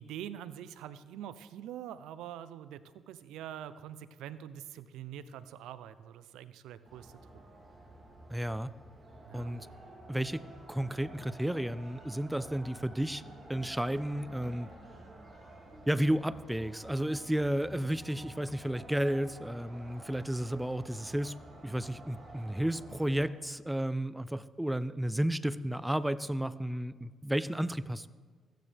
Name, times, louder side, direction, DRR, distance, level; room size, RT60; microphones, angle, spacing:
voice 1, 0.0-7.1 9.2-9.6, right 10 dB, 90° right, 14 dB, 0.5 m, -45 dB
sound 1, 6.8-23.3, right 1 dB, 30° right, 3.1 m, -51 dB
voice 2, 8.3-8.7 9.3-9.7 10.1-10.4 10.7-13.2 13.5-14.7 15.9-21.3 21.6-28.1, right 1 dB, 5° right, 16 dB, 0.4 m, -32 dB
15.5 x 13.5 x 3.4 m, 1.5 s
cardioid pair, 90°, 0 cm